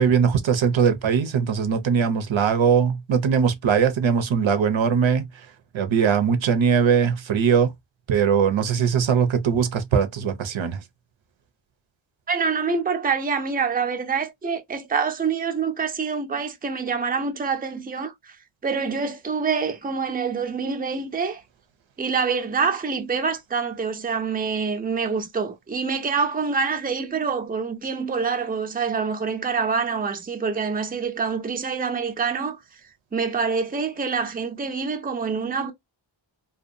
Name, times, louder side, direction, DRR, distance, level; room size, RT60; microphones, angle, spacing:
voice 1, 0.0-5.5 5.7-7.7 8.1-10.8, right 7 dB, 75° right, 0.7 m, -21 dB
voice 2, 12.3-18.4 18.6-21.4 22.0-32.6 33.1-35.7, right 5 dB, 20° right, 0.5 m, -26 dB
2.6 x 2.3 x 2.5 m
wide cardioid pair, 70°, 47 cm